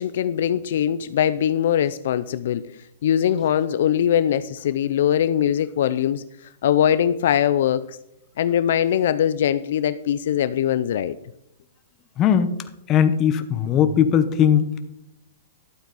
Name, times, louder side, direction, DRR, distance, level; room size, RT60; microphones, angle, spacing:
voice 1, 0.0-2.6 3.0-6.3 6.6-7.8 8.4-11.2, left 10 dB, 65° left, 14 dB, 0.4 m, -21 dB
voice 2, 12.2-12.6 12.9-14.7, left 8 dB, 25° left, 10 dB, 0.9 m, -19 dB
12.0 x 8.2 x 4.1 m, 0.79 s
hypercardioid pair, 165°, 0 cm